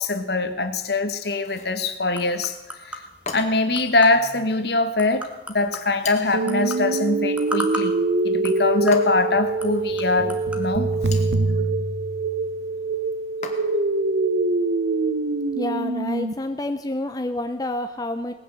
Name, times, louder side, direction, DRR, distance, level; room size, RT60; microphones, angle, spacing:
voice 1, 0.0-2.5 2.8-3.0 3.3-8.0 8.2-10.9, left 3 dB, 60° left, 9 dB, 1.5 m, -23 dB
sound 1, 1.2-10.7, equal, 5° right, 1.6 m, -38 dB
sound 2, 1.4-1.8 3.3-3.8 6.0-6.5 8.9-9.4 10.9-11.4 13.4-14.0, left 4 dB, 40° left, 2.1 m, -37 dB
sound 3, 6.3-16.3, right 3 dB, 90° right, 1.0 m, -24 dB
voice 2, 15.5-18.3, left 1 dB, 20° left, 7 dB, 0.7 m, -28 dB
19.0 x 9.8 x 7.7 m, 1.0 s
head